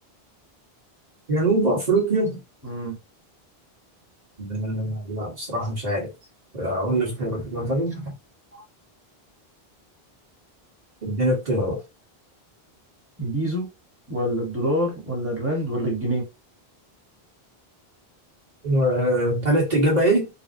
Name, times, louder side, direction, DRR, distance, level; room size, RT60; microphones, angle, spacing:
voice 1, 1.3-2.4 4.4-6.1 6.5-8.1 11.0-11.8 18.6-20.3, right 1 dB, 40° right, 1.4 m, -23 dB
voice 2, 2.6-3.0 13.2-13.7 14.1-16.2, equal, 15° right, 1.1 m, -26 dB
3.9 x 2.0 x 2.6 m
omnidirectional pair, 1.0 m